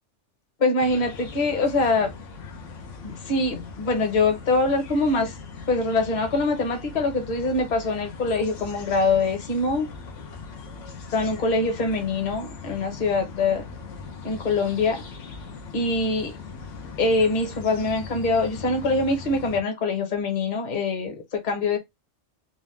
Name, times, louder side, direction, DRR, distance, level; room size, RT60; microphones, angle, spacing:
voice 1, 0.6-2.1 3.0-5.3 5.7-9.9 11.1-13.7 14.2-15.0 15.7-16.3 17.0-21.8, left 3 dB, 40° left, 1.1 m, -24 dB
sound 1, 0.8-19.6, left 4 dB, 75° left, 1.2 m, -40 dB
3.9 x 2.4 x 3.2 m
omnidirectional pair, 1.3 m